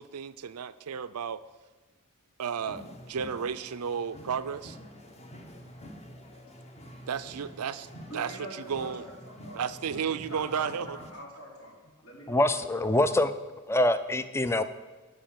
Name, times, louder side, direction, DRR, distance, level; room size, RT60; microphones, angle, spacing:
voice 1, 0.0-1.4 2.4-4.8 7.1-7.9 8.1-9.1 9.5-11.0, right 7 dB, 85° right, 14 dB, 0.5 m, -33 dB
sound 1, 2.6-11.1, equal, 30° left, 1.1 m, -48 dB
voice 2, 8.1-11.7 12.0-12.8, equal, 70° left, -4 dB, 4.3 m, -45 dB
voice 3, 12.3-13.3 13.7-14.6, left 1 dB, 10° left, 12 dB, 0.4 m, -24 dB
11.5 x 5.0 x 7.5 m, 1.2 s
head